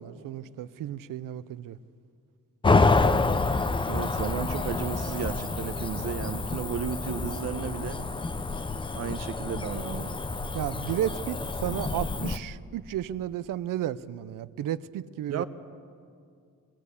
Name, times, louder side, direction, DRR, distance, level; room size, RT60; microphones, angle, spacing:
voice 1, 0.0-1.8 10.5-15.4, right 12 dB, 85° right, 16 dB, 0.7 m, -33 dB
Cricket / Motor vehicle (road), 2.6-12.4, left 3 dB, 15° left, 0.6 m, -28 dB
voice 2, 3.9-8.0 8.9-10.1 15.3-15.4, right 7 dB, 55° right, 10 dB, 0.9 m, -33 dB
21.0 x 18.0 x 8.4 m, 2.2 s
wide cardioid pair, 160°, 32 cm